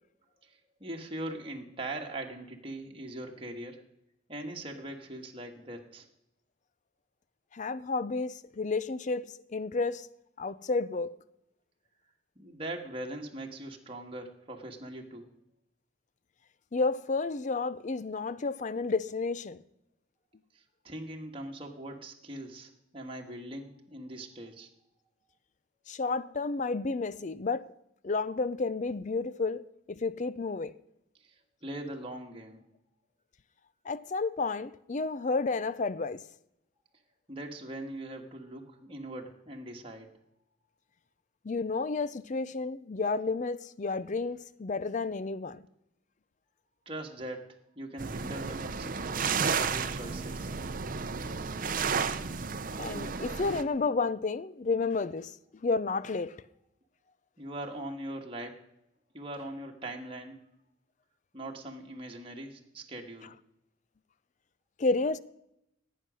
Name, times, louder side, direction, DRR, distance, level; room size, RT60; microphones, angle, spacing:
voice 1, 0.8-3.8 4.3-6.0 12.3-15.3 20.8-24.7 31.2-31.3 31.6-32.6 37.3-40.1 46.8-47.4 47.7-50.5 57.4-58.5 59.1-60.4 61.3-63.3, right 1 dB, 25° right, 1.6 m, -41 dB
voice 2, 7.5-10.1 10.4-11.1 16.7-19.6 25.9-27.7 28.0-30.7 33.9-36.2 41.4-45.6 52.8-55.3 55.6-56.4 64.8-65.2, left 3 dB, 35° left, 0.5 m, -31 dB
sound 1, 48.0-53.6, right 5 dB, 45° right, 0.7 m, -32 dB
16.5 x 9.2 x 6.3 m
head